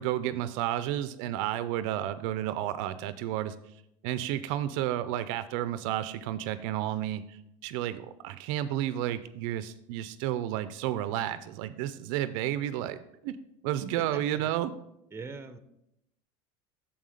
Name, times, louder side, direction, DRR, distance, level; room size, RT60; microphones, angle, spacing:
voice 1, 0.0-3.6 4.0-13.0 13.2-13.4 13.6-14.7, right 12 dB, 70° right, 14 dB, 0.5 m, -31 dB
voice 2, 14.0-14.5 15.1-15.6, right 4 dB, 15° right, 11 dB, 0.7 m, -42 dB
7.0 x 5.5 x 5.0 m, 0.82 s
supercardioid pair, 95°, 17 cm